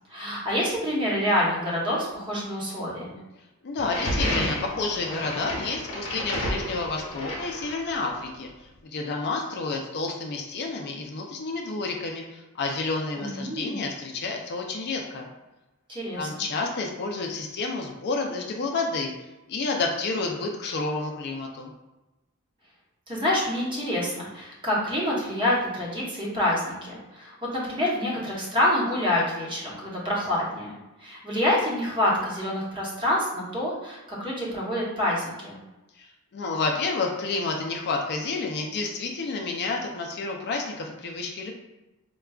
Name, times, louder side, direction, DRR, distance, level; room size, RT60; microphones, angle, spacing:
voice 1, 0.1-3.2 13.2-13.8 15.9-16.3 23.1-30.7 31.0-35.6, left 1 dB, 25° right, -5 dB, 0.9 m, -27 dB
voice 2, 3.6-8.5 8.8-15.3 16.2-19.1 19.5-21.7 36.0-41.5, left 3 dB, 50° left, 1 dB, 0.4 m, -30 dB
sound 1, 3.8-8.1, left 1 dB, 70° left, 1.0 m, -31 dB
4.7 x 2.2 x 2.3 m, 1.0 s
head